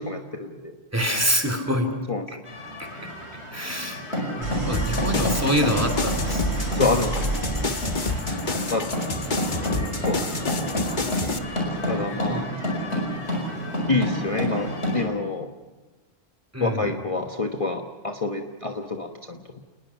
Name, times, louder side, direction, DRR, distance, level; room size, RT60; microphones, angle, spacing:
voice 1, 0.0-0.8 2.1-2.3 6.7-7.1 8.7-8.9 10.1-10.2 11.9-12.4 13.9-14.7 14.9-15.5 16.6-19.4, left 3 dB, 30° left, 3 dB, 1.3 m, -27 dB
voice 2, 0.9-1.9 2.3-2.4 2.8-2.9 3.5-4.0 4.4-6.6 8.1-8.3 11.8-12.4 16.5-16.9, equal, 15° right, 6 dB, 2.9 m, -26 dB
sound 1, 2.5-15.0, equal, 80° left, 5.5 m, -29 dB
Idling, 4.4-8.6, right 3 dB, 80° right, 4.8 m, -30 dB
sound 2, 4.7-11.4, left 3 dB, 45° left, 1.4 m, -30 dB
29.0 x 20.0 x 5.9 m, 1.2 s
omnidirectional pair, 1.1 m